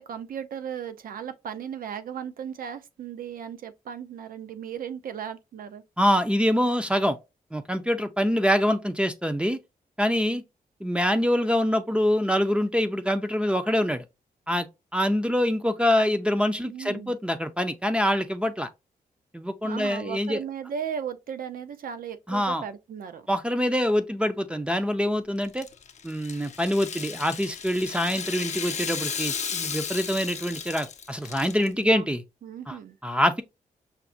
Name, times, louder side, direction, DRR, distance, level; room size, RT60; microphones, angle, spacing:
voice 1, 0.0-5.8 16.7-17.2 19.6-23.2 31.5-32.1 32.4-33.0, right 8 dB, 70° right, 0.6 m, -36 dB
voice 2, 6.0-7.2 7.5-9.6 10.0-10.4 10.8-14.0 14.5-14.7 14.9-18.7 19.3-20.4 22.3-22.6 23.3-25.7 26.0-32.2 32.7-32.8 33.0-33.4, equal, 5° right, 0.4 m, -25 dB
Rattle (instrument), 25.4-31.7, left 6 dB, 50° left, 0.5 m, -34 dB
5.7 x 2.1 x 2.5 m
wide cardioid pair, 125°, 15 cm